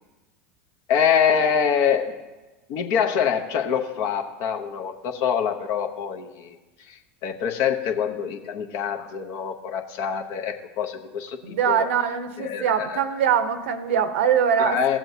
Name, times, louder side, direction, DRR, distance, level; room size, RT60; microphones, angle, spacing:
voice 1, 0.9-2.2 2.7-6.6 6.9-11.9 12.4-13.0 14.6-15.0, left 7 dB, 55° left, 6 dB, 0.9 m, -25 dB
voice 2, 11.4-15.0, right 8 dB, 80° right, 10 dB, 0.7 m, -23 dB
15.0 x 7.6 x 2.8 m, 1.2 s
hypercardioid pair, 100°, 7 cm